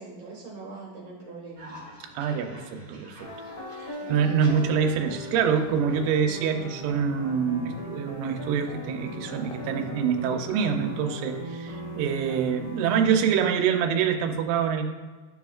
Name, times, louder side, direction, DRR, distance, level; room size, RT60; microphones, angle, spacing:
voice 1, 0.0-1.8 3.9-4.2 6.1-6.2, right 3 dB, 65° right, -4 dB, 2.1 m, -42 dB
Cough, 1.6-6.6, right 1 dB, 45° right, 1.9 m, -47 dB
voice 2, 2.2-3.2 3.8-14.8, right 7 dB, 85° right, 3 dB, 2.7 m, -25 dB
sound 1, 3.2-13.5, equal, 45° left, 1.6 m, -39 dB
sound 2, 6.0-6.2 7.7-8.0 9.4-9.8 10.2-10.3, left 4 dB, 90° left, 2.9 m, -47 dB
12.5 x 4.3 x 2.4 m, 1.4 s
omnidirectional pair, 4.6 m